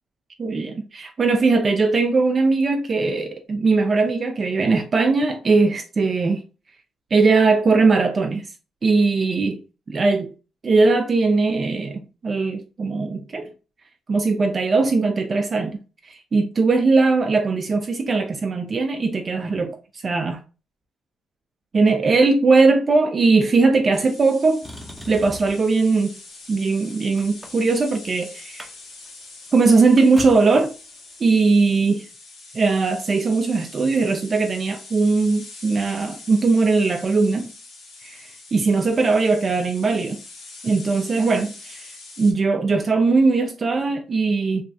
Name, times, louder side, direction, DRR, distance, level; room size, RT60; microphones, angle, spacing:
voice 1, 0.4-6.4 7.1-8.5 8.8-9.6 9.9-10.3 10.6-13.5 14.1-15.8 16.0-19.8 20.0-20.4 21.7-24.6 25.1-26.1 26.5-28.7 29.5-30.7 31.2-32.1 32.5-37.5 38.0-40.2 40.6-41.9 42.2-44.6, right 3 dB, 40° right, 0.4 m, -19 dB
sound 1, 23.9-42.3, left 3 dB, 75° left, 1.5 m, -43 dB
Motor vehicle (road), 24.6-25.8 26.5-28.1 28.4-28.7 29.0-29.1 29.5-30.6 31.6-31.7, equal, 5° right, 0.6 m, -39 dB
3.0 x 2.3 x 2.6 m
cardioid pair, 90°, 0 cm